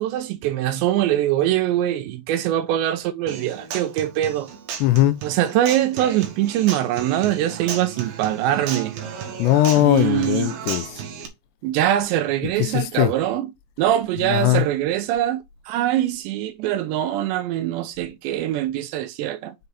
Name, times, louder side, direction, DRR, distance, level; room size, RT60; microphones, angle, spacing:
voice 1, 0.0-4.5 5.2-8.9 9.8-10.5 11.6-13.5 13.8-19.5, right 12 dB, 80° right, 2.9 m, -23 dB
Human voice / Acoustic guitar, 3.3-11.3, right 7 dB, 65° right, 2.7 m, -34 dB
voice 2, 4.8-5.2 9.4-10.9 12.7-13.1 14.2-14.6, left 14 dB, 85° left, 2.7 m, -19 dB
6.8 x 4.7 x 4.1 m
omnidirectional pair, 5.2 m